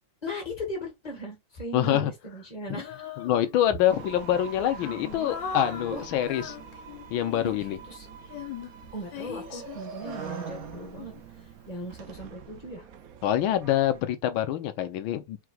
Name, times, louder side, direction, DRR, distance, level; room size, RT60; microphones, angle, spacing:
voice 1, 0.2-3.0 5.9-6.0 7.4-8.1 8.9-11.1 11.7-12.9, equal, 20° left, 1.5 m, -38 dB
voice 2, 1.7-2.1 2.7-2.8 3.2-6.5 7.1-7.8 13.2-15.4, left 11 dB, 90° left, 1.5 m, -25 dB
Female singing, 2.8-3.8 4.4-7.7 8.3-11.4, left 7 dB, 70° left, 1.5 m, -40 dB
sound 1, 3.9-14.0, right 7 dB, 70° right, 0.8 m, -44 dB
sound 2, 5.5-9.7, left 6 dB, 5° left, 2.4 m, -54 dB
4.8 x 3.8 x 2.4 m
omnidirectional pair, 2.1 m